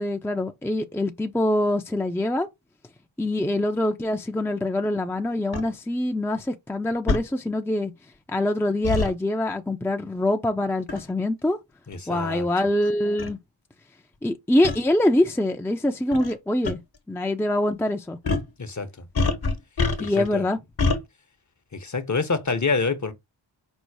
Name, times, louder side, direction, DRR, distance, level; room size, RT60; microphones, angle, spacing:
voice 1, 0.0-2.5 3.2-7.9 8.3-11.6 12.1-13.4 14.2-16.8 17.1-18.2 20.0-20.6, left 1 dB, 5° left, 0.6 m, -24 dB
sound 1, 5.5-5.7 7.1-7.3 8.8-9.1 10.9-11.1 11.9-12.0 12.8-12.9 13.2-13.3 14.6-14.8 16.1-16.3 16.6-16.7 18.2-18.5 19.1-20.3 20.8-21.0, left 3 dB, 55° left, 1.2 m, -24 dB
voice 2, 11.9-12.5 18.6-19.1 20.0-20.4 21.7-23.1, left 4 dB, 35° left, 0.9 m, -27 dB
5.5 x 2.0 x 4.7 m
cardioid pair, 55°, 47 cm